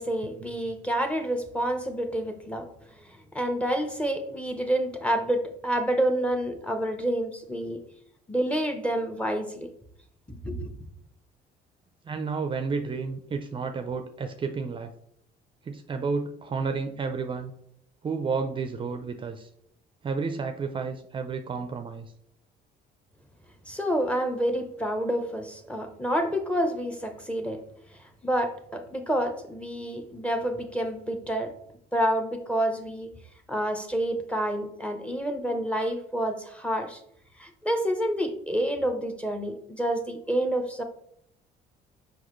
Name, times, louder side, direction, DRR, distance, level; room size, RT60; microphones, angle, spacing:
voice 1, 0.0-2.7 3.0-7.8 8.3-9.7 10.3-10.7 23.7-27.6 27.9-31.5 31.9-33.1 33.5-37.0 37.4-40.8, right 1 dB, 5° left, 6 dB, 0.9 m, -28 dB
voice 2, 12.0-14.9 15.6-17.5 18.0-19.5 20.0-22.1, right 4 dB, 30° right, 7 dB, 0.5 m, -31 dB
6.2 x 5.1 x 3.1 m, 0.71 s
cardioid pair, 110°, 17 cm